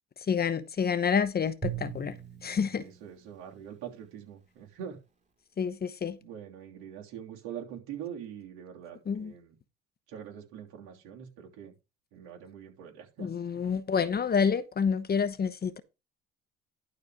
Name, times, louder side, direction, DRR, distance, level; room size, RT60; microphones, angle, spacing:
voice 1, 0.3-2.1 2.4-2.8 5.6-6.2 9.1-9.3 13.2-15.8, left 6 dB, 35° left, 1.0 m, -28 dB
Drum, 1.6-4.0, right 9 dB, 25° right, 2.4 m, -40 dB
voice 2, 2.8-5.0 6.2-9.5 10.1-11.7 12.1-13.3, right 9 dB, 75° right, 3.3 m, -43 dB
12.0 x 4.2 x 5.0 m
supercardioid pair, 85°, 29 cm